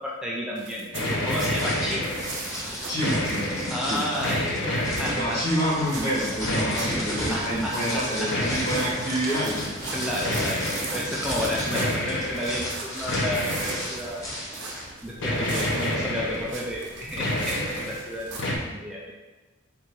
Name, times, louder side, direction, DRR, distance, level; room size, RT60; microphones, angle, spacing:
voice 1, 0.0-2.2 3.7-5.7 7.0-8.6 9.9-14.3 15.0-19.1, equal, 5° right, -5 dB, 0.4 m, -32 dB
sound 1, 0.6-18.4, right 3 dB, 60° right, 0.7 m, -40 dB
sound 2, 0.9-2.4 2.8-3.8 4.2-5.5 6.4-7.3 8.3-9.1 10.2-11.1 11.7-12.6 13.1-14.2 15.2-16.6 16.9-18.0 18.4-18.6, left 1 dB, 65° left, 0.7 m, -29 dB
sound 3, 1.5-14.9, equal, 15° left, 0.9 m, -34 dB
voice 2, 2.9-4.1 5.0-9.6, equal, 50° left, -6 dB, 1.4 m, -28 dB
3.8 x 2.5 x 4.5 m, 1.2 s
head